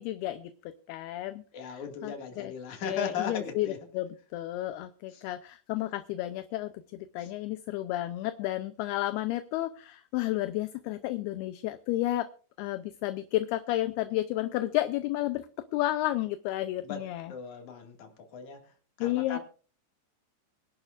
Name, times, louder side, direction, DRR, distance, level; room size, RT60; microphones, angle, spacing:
voice 1, 0.0-2.5 2.8-12.3 12.6-15.5 15.7-17.3 19.0-19.4, left 15 dB, 80° left, 10 dB, 2.5 m, -32 dB
voice 2, 1.5-3.8 5.1-5.2 7.2-7.3 16.8-18.7 19.0-19.4, left 6 dB, 50° left, 3 dB, 3.3 m, -38 dB
24.5 x 11.0 x 2.6 m, 0.40 s
omnidirectional pair, 4.9 m